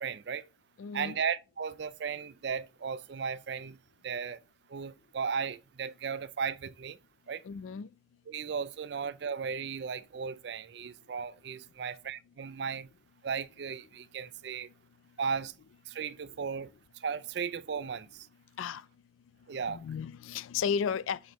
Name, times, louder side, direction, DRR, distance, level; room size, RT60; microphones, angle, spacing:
voice 1, 0.0-0.5 0.9-3.8 4.0-4.4 4.7-7.0 7.3-7.4 8.3-12.9 13.2-14.7 15.2-15.5 15.9-18.3 19.5-19.8, right 6 dB, 60° right, 0.4 m, -36 dB
voice 2, 0.8-1.2 7.5-7.9 18.6-18.8 19.6-21.2, left 7 dB, 90° left, 0.3 m, -33 dB
5.9 x 5.2 x 3.0 m
head